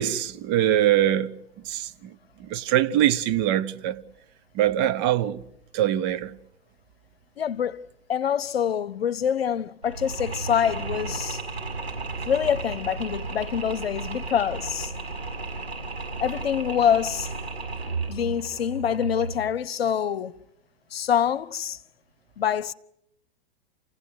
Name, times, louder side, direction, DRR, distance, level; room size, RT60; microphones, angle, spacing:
voice 1, 0.0-1.3 1.7-1.8 2.5-4.0 4.6-5.4 5.7-6.3, right 12 dB, 35° right, 1.0 m, -22 dB
voice 2, 7.4-11.4 12.3-14.9 16.2-17.3 18.1-20.4 20.9-21.8 22.4-22.7, left 8 dB, 70° left, 0.9 m, -25 dB
Mechanisms, 9.8-19.6, right 3 dB, 80° right, 6.9 m, -34 dB
28.0 x 16.0 x 9.6 m
figure-of-eight pair, 105°, 31 cm